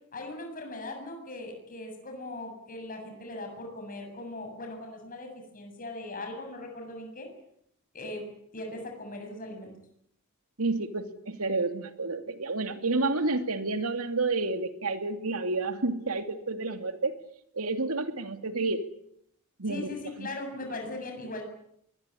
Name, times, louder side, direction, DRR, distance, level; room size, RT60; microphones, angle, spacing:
voice 1, 0.1-7.3 7.9-8.2 8.5-9.7 19.6-21.4, left 2 dB, 40° left, 3 dB, 7.7 m, -39 dB
voice 2, 10.6-17.1 17.5-18.8 19.6-19.9 20.2-20.3, right 3 dB, 80° right, 8 dB, 2.6 m, -30 dB
23.0 x 21.5 x 9.9 m, 0.72 s
head